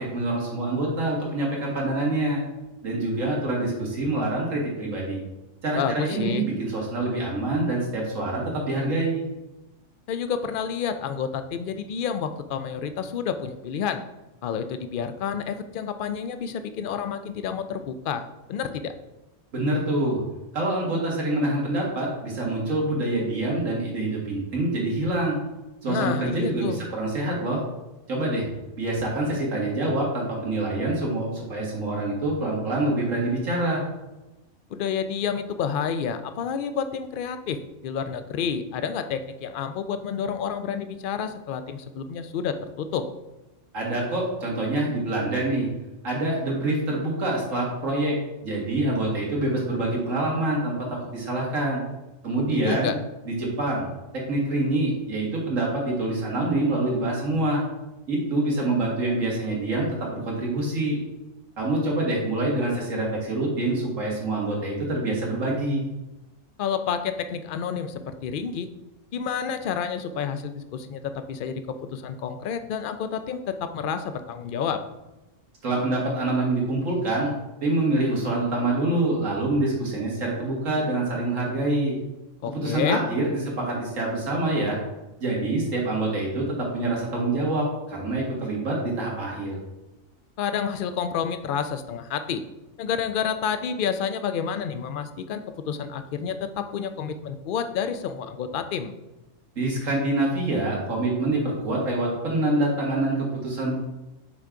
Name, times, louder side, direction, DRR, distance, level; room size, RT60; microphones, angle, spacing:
voice 1, 0.0-2.4 2.8-5.2 5.6-9.2 19.5-20.2 20.5-25.4 25.8-27.6 28.1-28.5 28.8-33.8 43.7-45.7 46.0-48.1 48.4-50.8 51.1-51.8 52.2-52.9 53.3-53.9 54.3-57.6 58.1-61.0 61.6-65.9 75.6-77.3 77.6-81.9 82.5-84.8 85.2-89.6 99.6-103.7, right 2 dB, 85° right, -2 dB, 2.1 m, -26 dB
voice 2, 5.8-6.5 10.1-14.0 14.4-18.2 18.5-18.9 25.9-26.9 34.7-43.0 52.6-53.0 66.6-68.7 69.1-71.6 71.9-74.8 82.4-83.0 90.4-92.4 92.8-98.9, left 7 dB, 65° left, 9 dB, 0.5 m, -29 dB
6.0 x 4.6 x 3.8 m, 1.0 s
omnidirectional pair, 1.3 m